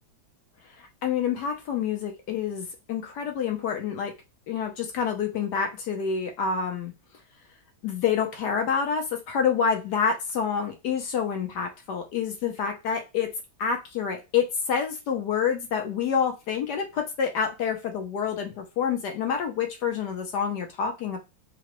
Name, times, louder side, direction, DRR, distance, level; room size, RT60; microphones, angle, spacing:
voice 1, 1.0-4.1 4.5-6.9 7.8-13.3 13.6-21.2, left 7 dB, 65° left, 4 dB, 1.1 m, -27 dB
3.8 x 2.2 x 2.9 m, 0.25 s
omnidirectional pair, 2.2 m